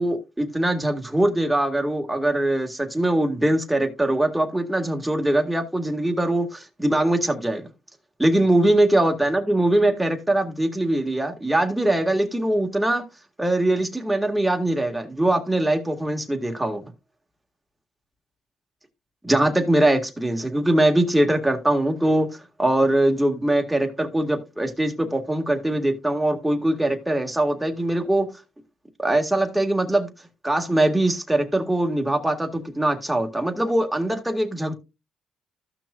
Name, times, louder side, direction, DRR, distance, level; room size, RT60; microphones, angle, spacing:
voice 1, 0.0-7.6 8.2-13.0 13.4-16.8 19.2-22.3 22.6-28.3 29.0-30.1 30.4-34.7, right 1 dB, 5° right, 3 dB, 1.9 m, -22 dB
14.5 x 6.0 x 2.4 m, 0.26 s
cardioid pair, 90°, 0 cm